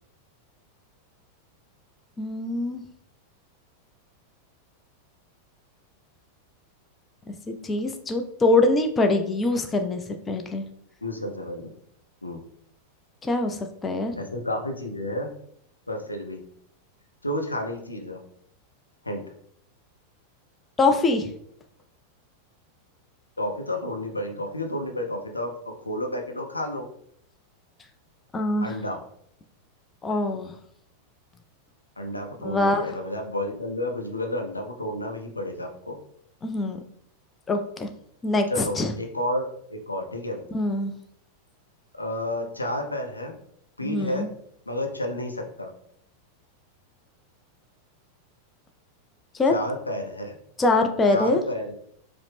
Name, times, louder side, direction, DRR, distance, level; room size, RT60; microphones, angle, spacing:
voice 1, 2.2-2.8 7.3-10.0 10.3-10.7 13.2-14.2 20.8-21.3 28.3-28.8 30.0-30.5 32.4-32.9 36.4-36.8 37.5-37.9 38.2-38.9 40.5-40.9 43.8-44.3 49.3-49.5 50.6-51.4, left 2 dB, 15° left, 5 dB, 0.4 m, -24 dB
voice 2, 11.0-11.7 12.2-12.4 14.2-15.3 15.9-16.4 17.2-18.2 19.0-19.2 23.4-25.5 25.8-26.9 28.6-29.0 32.0-36.0 38.5-39.4 39.7-40.4 41.9-43.3 43.8-44.3 44.7-45.7 49.5-50.4 51.1-51.7, left 1 dB, 80° left, 3 dB, 0.6 m, -31 dB
4.8 x 2.0 x 3.3 m, 0.68 s
figure-of-eight pair, 90°, 0 cm